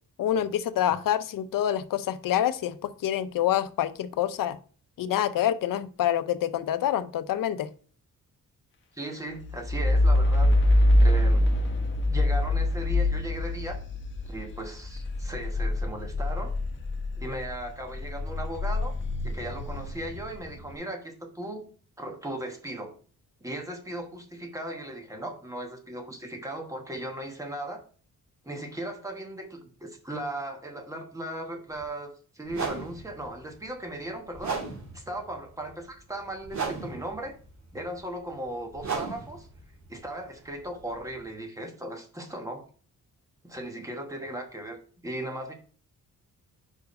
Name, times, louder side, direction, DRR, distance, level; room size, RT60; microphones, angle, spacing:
voice 1, 0.2-4.6 5.0-7.7, left 11 dB, 75° left, 13 dB, 0.6 m, -27 dB
voice 2, 8.9-11.5 12.1-13.8 14.2-16.5 17.2-18.9 19.2-21.7 22.0-22.9 23.4-27.8 28.4-34.6 34.9-37.4 37.7-39.5 39.9-42.6 43.4-45.5, right 1 dB, 10° right, 3 dB, 1.2 m, -37 dB
sound 1, 9.3-17.5 17.9-20.5, left 1 dB, 35° left, 1.1 m, -24 dB
sound 2, 31.7-31.8 32.5-41.3, right 5 dB, 55° right, 2.5 m, -37 dB
5.3 x 4.6 x 5.2 m, 0.42 s
wide cardioid pair, 180°, 33 cm